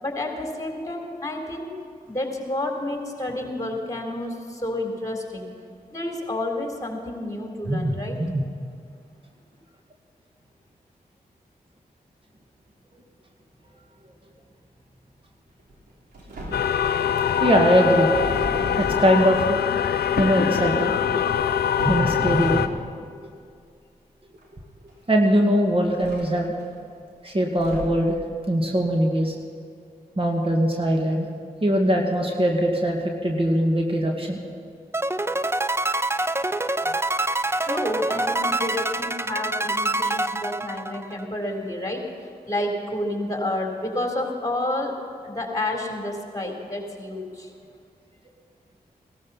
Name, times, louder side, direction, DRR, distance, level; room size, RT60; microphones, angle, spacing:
voice 1, 0.0-1.7 2.1-5.5 5.9-8.2 37.6-42.0 42.5-44.9 45.2-47.5, left 1 dB, 20° left, 1 dB, 3.9 m, -30 dB
voice 2, 7.7-8.4 17.4-18.1 18.8-19.6 20.2-22.7 25.1-26.5 27.2-28.2 28.5-29.3 30.2-31.3 31.6-34.4, equal, 35° right, 1 dB, 2.0 m, -21 dB
sound 1, 15.7-15.9 16.1-16.8 18.1-19.1 21.8-22.8 24.4-24.5 24.9-25.0 26.0-26.6 27.6-28.2, right 1 dB, 85° right, 3.3 m, -34 dB
sound 2, 16.5-22.7, left 8 dB, 75° left, 0.6 m, -23 dB
sound 3, 34.9-41.2, right 2 dB, 15° right, 0.6 m, -25 dB
17.5 x 13.0 x 5.7 m, 2.3 s
cardioid pair, 40°, 16 cm